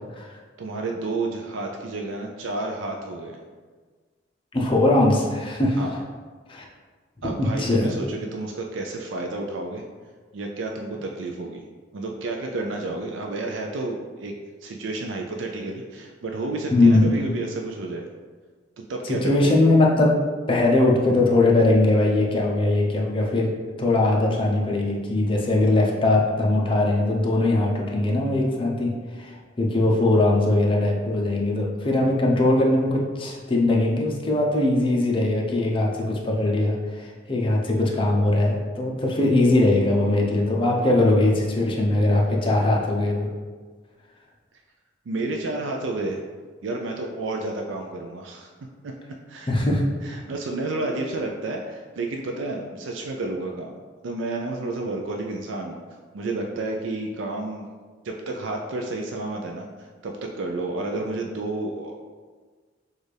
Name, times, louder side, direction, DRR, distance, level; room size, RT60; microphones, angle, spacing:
voice 1, 0.6-3.4 5.8-6.0 7.2-9.8 10.3-11.6 11.9-14.3 14.6-18.1 18.9-19.5 45.1-46.2 46.6-48.5 48.8-48.9 49.3-49.5 50.0-55.8 56.1-57.7 58.0-62.0, right 2 dB, 85° right, 1 dB, 0.4 m, -30 dB
voice 2, 4.5-5.8 6.5-6.6 7.2-7.9 16.7-17.2 19.0-20.1 20.5-23.5 23.8-43.3 49.5-49.8, left 2 dB, 30° left, -2 dB, 0.7 m, -21 dB
6.3 x 2.4 x 3.3 m, 1.5 s
head